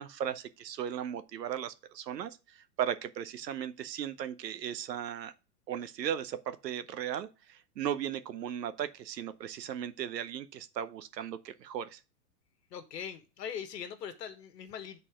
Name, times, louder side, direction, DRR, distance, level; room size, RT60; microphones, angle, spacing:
voice 1, 0.0-5.3 5.7-12.0, right 9 dB, 90° right, 0.9 m, -37 dB
voice 2, 12.7-15.0, left 8 dB, 80° left, 1.4 m, -41 dB
7.7 x 4.1 x 4.8 m
hypercardioid pair, 140°, 48 cm